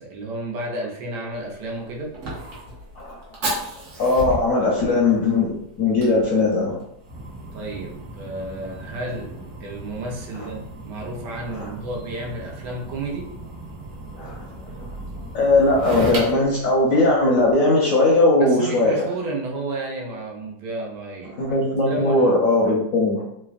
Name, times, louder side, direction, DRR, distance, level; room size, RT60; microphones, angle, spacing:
voice 1, 0.0-2.1 7.5-13.4 18.4-21.5 21.8-22.3, right 2 dB, 75° right, -1 dB, 1.2 m, -32 dB
Fire, 1.3-17.5, right 1 dB, 60° right, 0.9 m, -35 dB
voice 2, 4.0-6.8 11.5-11.7 14.1-14.4 15.3-19.0 21.4-23.2, left 2 dB, 70° left, -3 dB, 0.8 m, -19 dB
3.3 x 2.1 x 2.4 m, 0.77 s
omnidirectional pair, 1.8 m